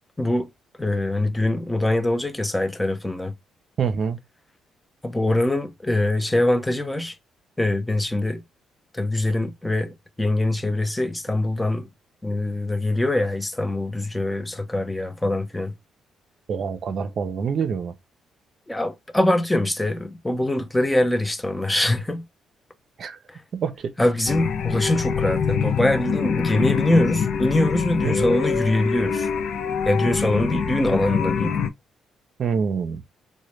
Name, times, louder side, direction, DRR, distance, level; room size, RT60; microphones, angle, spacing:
voice 1, 0.2-0.5 0.8-3.3 5.0-7.1 7.6-8.4 8.9-11.9 12.2-15.7 18.7-22.2 23.3-23.4 24.0-29.3 29.9-31.6, left 1 dB, 10° left, 0.6 m, -23 dB
voice 2, 3.8-4.2 16.5-17.9 23.0-23.2 23.5-23.9 28.0-28.3 32.4-33.0, right 6 dB, 55° right, 0.5 m, -26 dB
sound 1, 24.3-31.7, left 6 dB, 65° left, 0.4 m, -24 dB
3.9 x 2.1 x 3.2 m
cardioid pair, 90°, 0 cm